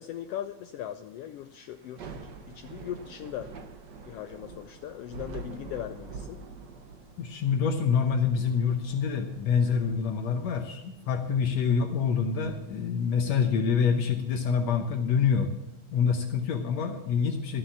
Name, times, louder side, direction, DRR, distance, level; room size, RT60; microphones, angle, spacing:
voice 1, 0.0-3.5 4.0-6.4, left 11 dB, 90° left, 9 dB, 1.3 m, -39 dB
Thunder / Rain, 1.8-15.0, right 4 dB, 80° right, 0.9 m, -47 dB
voice 2, 7.2-15.5 15.9-17.6, left 6 dB, 70° left, 5 dB, 2.0 m, -26 dB
13.0 x 7.7 x 7.2 m, 0.88 s
omnidirectional pair, 3.3 m